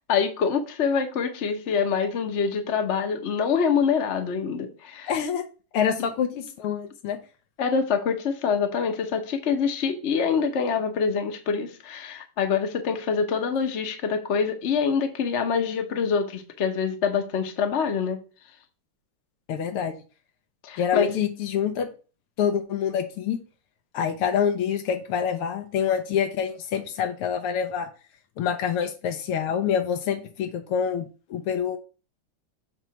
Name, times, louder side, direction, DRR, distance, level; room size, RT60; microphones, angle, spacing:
voice 1, 0.1-5.1 7.6-18.2 20.6-21.2, left 6 dB, 50° left, 0.8 m, -25 dB
voice 2, 5.1-5.4 5.7-7.2 19.5-19.9 20.8-21.9 22.4-23.4 23.9-27.9 28.4-31.8, left 8 dB, 90° left, 1.8 m, -26 dB
7.4 x 3.1 x 5.6 m
omnidirectional pair, 2.4 m